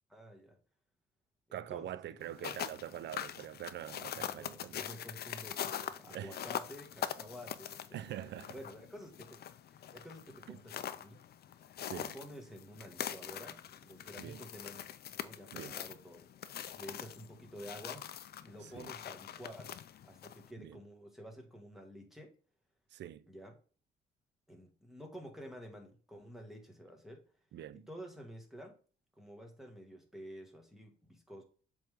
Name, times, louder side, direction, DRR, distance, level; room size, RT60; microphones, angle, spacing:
voice 1, 0.1-0.6 1.5-1.9 2.2-2.5 4.1-8.3 8.5-9.4 9.7-11.2 11.9-16.3 16.8-18.1 18.4-19.8 20.0-22.3 23.3-23.6 24.5-27.2 27.7-28.8 29.2-31.4, equal, ahead, 1.8 m, -50 dB
voice 2, 1.5-4.8 6.1-6.4 7.9-8.5 10.5-10.6 11.8-12.1 14.2-14.4 15.5-15.8 18.6-18.9 20.6-20.8 22.9-23.3 27.5-27.9, right 11 dB, 60° right, 0.4 m, -44 dB
sound 1, 2.2-20.5, left 10 dB, 55° left, 0.5 m, -43 dB
7.5 x 3.6 x 3.5 m
cardioid pair, 90°, 20 cm